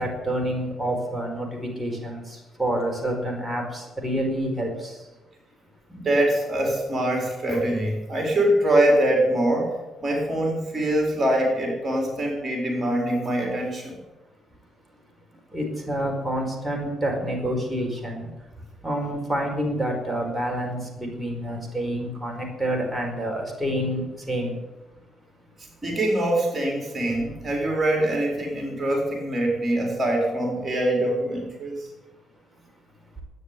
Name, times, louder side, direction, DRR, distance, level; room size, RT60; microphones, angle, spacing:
voice 1, 0.0-5.0 15.5-18.3 18.8-24.5, right 1 dB, ahead, -1 dB, 4.9 m, -28 dB
voice 2, 5.9-14.0 25.6-31.9, right 1 dB, 30° right, 0 dB, 4.4 m, -24 dB
13.0 x 9.8 x 9.8 m, 1.1 s
cardioid pair, 90°, 0 cm